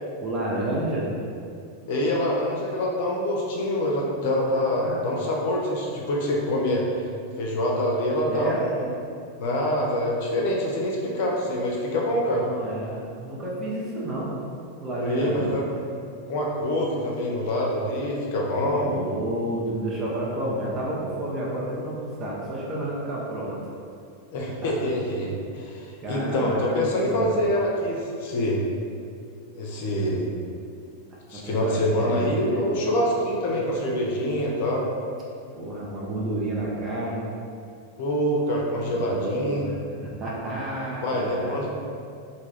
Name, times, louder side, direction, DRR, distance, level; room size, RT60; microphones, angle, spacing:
voice 1, 0.2-1.1 4.4-5.1 8.3-8.7 12.3-14.3 14.8-15.6 18.8-23.6 24.6-24.7 26.0-26.8 27.1-27.4 31.1-32.6 33.1-33.6 35.5-37.3 38.8-39.7 40.0-41.6, right 1 dB, 25° right, -5 dB, 0.5 m, -31 dB
voice 2, 1.9-7.1 7.4-8.9 9.4-12.5 15.0-15.8 16.3-18.9 24.3-28.6 29.5-30.3 31.3-34.8 38.0-39.6 41.0-41.7, left 1 dB, 50° left, -2 dB, 0.5 m, -25 dB
2.2 x 2.2 x 3.3 m, 2.4 s
figure-of-eight pair, 90°, 0 cm